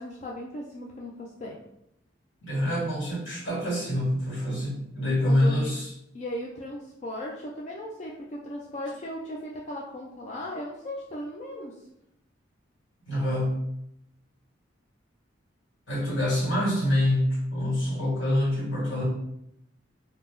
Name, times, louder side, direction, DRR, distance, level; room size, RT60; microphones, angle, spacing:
voice 1, 0.0-1.6 5.2-5.7 6.1-11.7, left 1 dB, 35° left, -2 dB, 0.3 m, -37 dB
voice 2, 2.4-5.9 13.1-13.6 15.9-19.0, left 1 dB, 75° left, -7 dB, 1.4 m, -26 dB
2.8 x 2.0 x 3.4 m, 0.78 s
head